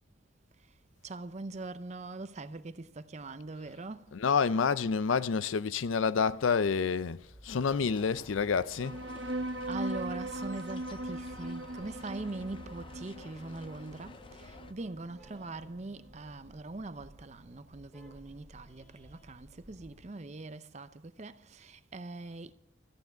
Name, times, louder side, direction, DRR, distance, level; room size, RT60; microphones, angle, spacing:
voice 1, 1.0-4.1 9.7-22.5, right 2 dB, 35° right, 0.6 m, -42 dB
voice 2, 4.1-9.0, left 5 dB, 80° left, 0.5 m, -28 dB
sound 1, 6.6-20.1, equal, 5° left, 2.3 m, -58 dB
sound 2, 7.5-14.7, left 3 dB, 25° left, 0.4 m, -51 dB
sound 3, 8.8-15.8, right 1 dB, 60° right, 1.0 m, -40 dB
14.0 x 9.3 x 7.1 m
head